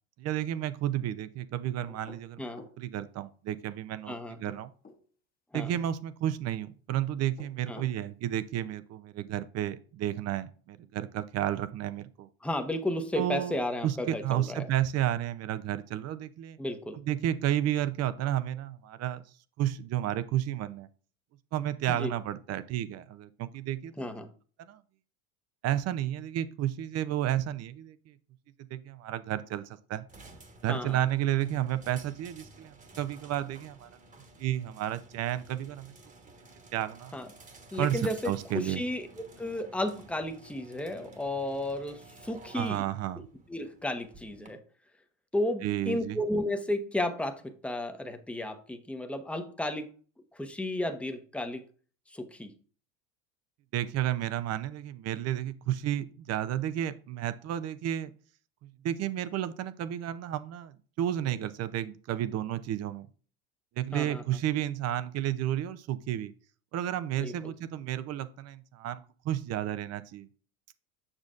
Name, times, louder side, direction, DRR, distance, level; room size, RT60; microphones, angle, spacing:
voice 1, 0.2-4.7 5.5-12.3 13.2-13.6 13.8-16.6 16.9-19.2 19.6-20.9 21.5-24.2 24.7-24.8 25.6-28.2 28.7-30.1 30.6-33.9 34.4-35.9 36.7-37.1 37.8-38.8 42.5-43.2 45.6-46.2 53.7-58.1 58.6-63.1 63.8-66.3 66.7-70.3, right 12 dB, 40° right, 13 dB, 0.6 m, -32 dB
sound 1, 1.9-2.8 4.3-5.0 7.2-8.0, left 4 dB, 20° left, 1.2 m, -51 dB
voice 2, 4.1-4.4 5.5-5.7 7.7-7.8 12.4-14.7 16.6-17.0 21.9-22.1 24.0-24.3 30.7-31.0 37.1-37.3 37.7-42.9 43.5-44.6 45.3-49.9 50.3-51.6 52.1-52.5 63.9-64.2 67.2-67.5, left 1 dB, 5° left, 6 dB, 0.8 m, -33 dB
sound 2, 30.1-44.5, right 2 dB, 20° right, 1.3 m, -53 dB
7.4 x 6.2 x 2.5 m, 0.40 s
hypercardioid pair, 95°, 40 cm